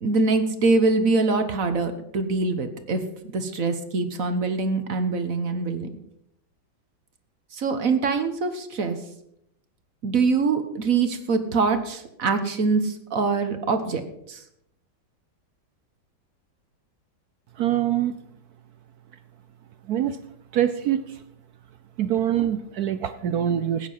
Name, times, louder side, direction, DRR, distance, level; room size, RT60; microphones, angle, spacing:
voice 1, 0.0-3.0 3.3-5.9 7.5-9.0 10.0-14.0 14.3-14.4, right 4 dB, 45° right, 8 dB, 1.4 m, -24 dB
voice 2, 17.6-18.2 19.9-20.2 20.5-21.2 22.0-23.9, right 10 dB, 70° right, 11 dB, 0.9 m, -24 dB
15.0 x 9.6 x 5.6 m, 0.76 s
omnidirectional pair, 2.2 m